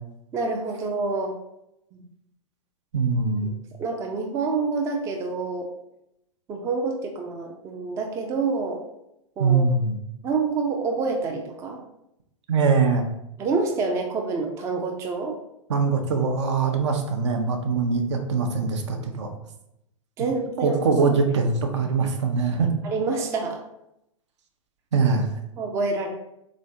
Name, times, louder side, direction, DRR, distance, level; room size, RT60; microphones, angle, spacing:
voice 1, 0.3-1.3 1.9-2.1 3.4-3.5 3.8-5.7 6.5-8.8 9.4-9.7 10.2-11.8 13.4-15.4 20.2-20.8 22.8-23.6 25.6-26.1, right 4 dB, 15° right, 2 dB, 0.4 m, -27 dB
voice 2, 2.9-3.5 9.4-9.9 12.5-13.1 15.7-19.3 20.6-22.7 24.9-25.3, right 4 dB, 55° right, 4 dB, 0.6 m, -22 dB
3.7 x 3.1 x 2.6 m, 0.82 s
figure-of-eight pair, 100°, 18 cm